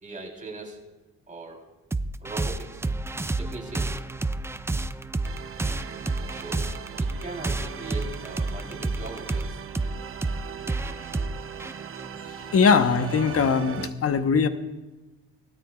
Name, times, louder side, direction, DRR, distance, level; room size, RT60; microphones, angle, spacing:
voice 1, 0.0-0.8 1.3-1.7 2.2-2.9 3.4-4.0 6.3-6.7 7.0-9.6, right 2 dB, 25° right, 0 dB, 3.7 m, -39 dB
sound 1, 1.9-13.0, right 2 dB, 10° right, 0.3 m, -30 dB
sound 2, 5.2-13.9, right 9 dB, 45° right, 0.7 m, -40 dB
voice 2, 12.4-14.5, left 5 dB, 50° left, 9 dB, 1.1 m, -21 dB
19.0 x 13.0 x 2.4 m, 1.1 s
cardioid pair, 90°, 30 cm